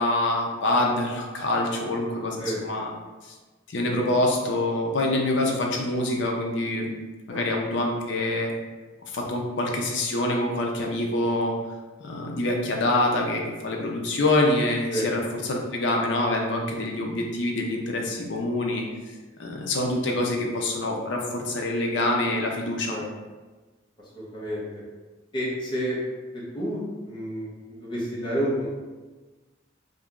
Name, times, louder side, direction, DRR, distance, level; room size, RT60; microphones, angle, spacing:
voice 1, 0.0-2.9 3.2-3.3 3.7-6.9 7.3-8.5 9.1-11.5 12.0-15.2 15.5-18.8 19.4-23.0, left 2 dB, 70° left, 0 dB, 0.6 m, -25 dB
voice 2, 24.1-24.6 25.3-26.0 26.3-28.7, equal, 25° left, -7 dB, 1.1 m, -30 dB
2.9 x 2.7 x 3.6 m, 1.3 s
head